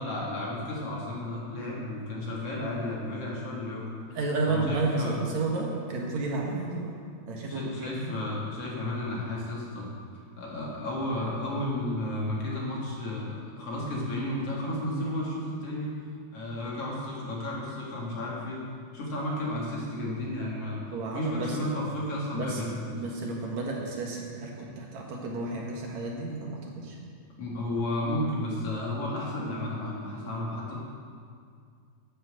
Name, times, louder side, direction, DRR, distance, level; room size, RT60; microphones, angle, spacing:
voice 1, 0.0-3.9 4.4-5.2 7.5-9.9 10.4-15.9 16.3-18.6 18.9-20.8 21.1-23.0 27.4-30.8, left 1 dB, 55° left, -4 dB, 3.1 m, -32 dB
voice 2, 4.1-6.9 7.3-8.2 20.9-21.7 22.3-22.6 22.9-27.0, right 3 dB, 70° right, -1 dB, 2.8 m, -32 dB
11.0 x 7.5 x 7.7 m, 2.2 s
omnidirectional pair, 3.4 m